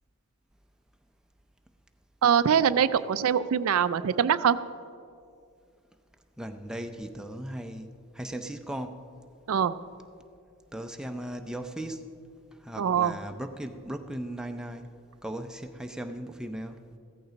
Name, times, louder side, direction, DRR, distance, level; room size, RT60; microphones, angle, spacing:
voice 1, 2.2-4.6 9.5-9.7 12.8-13.2, right 8 dB, 75° right, 0.4 m, -23 dB
voice 2, 6.4-7.9 8.1-9.0 10.7-12.1 12.6-14.9 15.2-16.8, right 1 dB, 5° right, 0.5 m, -37 dB
15.5 x 14.0 x 4.0 m
head